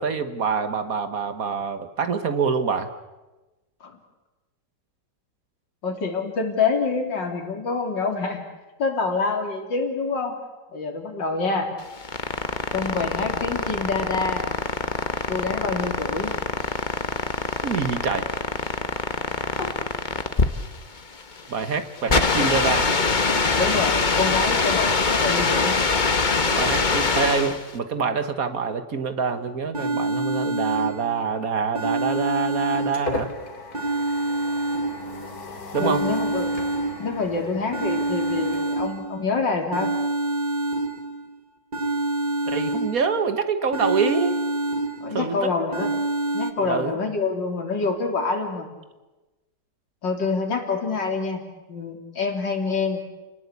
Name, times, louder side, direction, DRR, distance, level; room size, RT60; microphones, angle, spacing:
voice 1, 0.0-2.9 17.6-18.3 21.5-23.0 26.6-33.3 35.7-36.1 42.5-44.4 45.1-45.7 46.6-46.9, right 5 dB, 55° right, 10 dB, 1.7 m, -25 dB
voice 2, 5.8-8.4 8.8-10.4 10.7-11.7 12.7-14.4 15.3-16.3 19.6-19.7 23.6-25.7 35.8-36.6 37.0-39.9 45.0-45.9 46.3-48.7 50.0-51.4 51.7-53.0, left 4 dB, 85° left, 4 dB, 3.9 m, -26 dB
sound 1, 11.8-27.7, left 4 dB, 30° left, 1.3 m, -24 dB
sound 2, 29.3-29.4 29.7-31.3 31.7-33.3 33.7-35.3 35.7-37.3 37.7-39.3 39.7-41.3 41.7-43.3 43.7-45.3 45.7-46.5, right 2 dB, 30° right, 1.6 m, -27 dB
Maquina jamon, 32.6-39.6, left 3 dB, 55° left, 2.9 m, -38 dB
29.5 x 19.0 x 8.4 m, 1.1 s
omnidirectional pair, 1.9 m